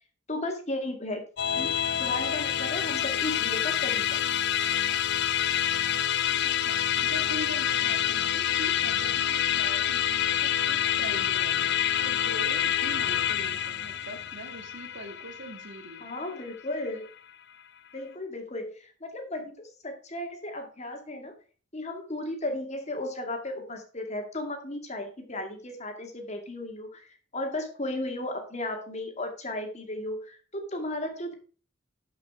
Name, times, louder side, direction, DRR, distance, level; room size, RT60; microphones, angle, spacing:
voice 1, 0.3-1.2 1.6-1.7 2.0-4.2 16.0-17.1 17.9-21.3 21.7-31.3, left 1 dB, 30° left, 4 dB, 2.1 m, -35 dB
Musical instrument, 1.4-16.9, left 10 dB, 50° left, 0.5 m, -27 dB
voice 2, 6.4-16.1, right 1 dB, 55° right, 6 dB, 1.9 m, -42 dB
12.5 x 5.5 x 4.8 m, 0.38 s
head